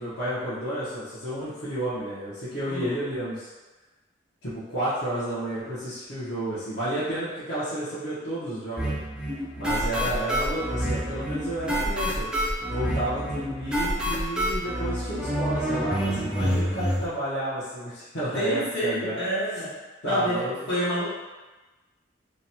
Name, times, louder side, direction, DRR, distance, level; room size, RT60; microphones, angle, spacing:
voice 1, 0.0-3.5 4.4-9.0 9.6-12.3 12.7-19.2 20.0-20.5, right 1 dB, 60° left, -13 dB, 0.8 m, -31 dB
sound 1, 8.8-17.0, equal, 5° right, 0.3 m, -28 dB
voice 2, 18.3-19.7 20.0-21.0, equal, 75° left, -10 dB, 1.2 m, -28 dB
2.8 x 2.1 x 2.8 m, 1.2 s
head